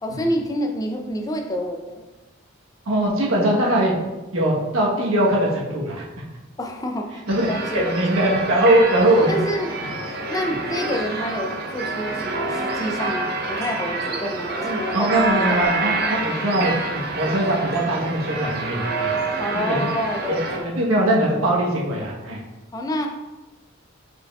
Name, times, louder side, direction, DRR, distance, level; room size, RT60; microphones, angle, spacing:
voice 1, 0.0-2.0 6.6-7.1 7.5-7.9 9.3-9.7 10.3-15.1 15.5-16.2 19.4-20.8 22.7-23.1, equal, 15° left, 2 dB, 0.4 m, -28 dB
voice 2, 2.9-3.9 4.3-6.0 7.3-7.5 7.7-9.4 9.8-9.9 14.9-19.1 19.5-19.9 20.3-20.4 20.6-22.4, right 1 dB, 90° right, -3 dB, 1.1 m, -21 dB
sound 1, 7.3-20.6, right 3 dB, 50° right, 0.6 m, -27 dB
5.0 x 4.6 x 2.3 m, 1.1 s
head